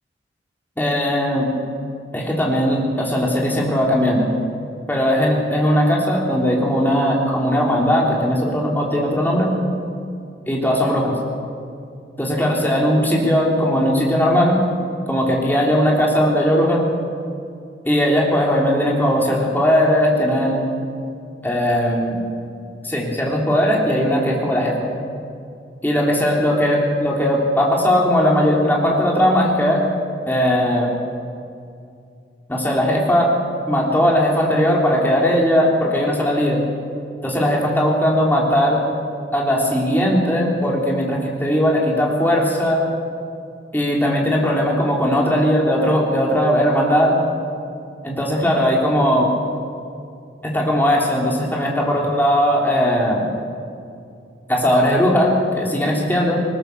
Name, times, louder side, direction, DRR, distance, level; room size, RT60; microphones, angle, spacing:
voice 1, 0.8-1.7 2.1-4.3 4.9-9.5 10.5-11.2 12.2-14.6 15.1-16.8 17.8-20.7 21.4-22.2 22.8-24.8 25.8-29.8 30.3-30.9 32.5-33.3 33.7-36.6 37.2-38.8 39.3-42.8 43.7-47.2 48.0-49.3 50.4-53.3 54.5-56.4, equal, 10° left, -2 dB, 3.6 m, -18 dB
20.5 x 20.5 x 7.0 m, 2.4 s
head